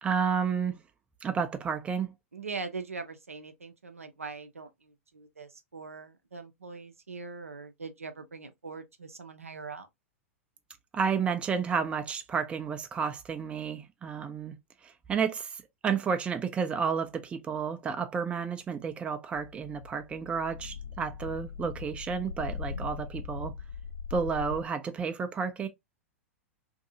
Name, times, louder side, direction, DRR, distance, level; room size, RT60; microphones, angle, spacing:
voice 1, 0.0-0.8 1.2-2.1 10.9-14.5 14.8-23.5 24.1-25.7, right 6 dB, 15° right, 0.4 m, -31 dB
voice 2, 2.3-9.9, right 4 dB, 80° right, 0.5 m, -42 dB
sound 1, 19.3-24.6, left 5 dB, 85° left, 0.6 m, -40 dB
2.6 x 2.6 x 2.6 m
figure-of-eight pair, 95°, 7 cm